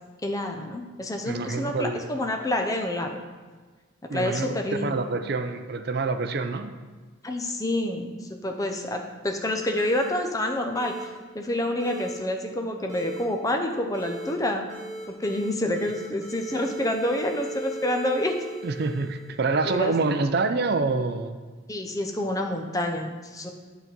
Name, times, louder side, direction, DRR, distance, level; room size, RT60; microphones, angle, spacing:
voice 1, 0.2-3.2 4.0-5.0 7.2-11.1 11.3-14.7 15.2-18.4 19.7-20.0 21.7-23.5, left 1 dB, 15° left, 4 dB, 0.6 m, -28 dB
voice 2, 1.3-2.0 4.1-6.7 18.6-21.3, right 3 dB, 50° right, 8 dB, 0.5 m, -26 dB
sound 1, 9.7-10.1 10.7-11.0 11.8-12.1 12.9-13.2 13.9-14.3 14.7-15.5 15.7-19.5, right 1 dB, 15° right, 1.9 m, -38 dB
8.1 x 4.1 x 6.1 m, 1.4 s
head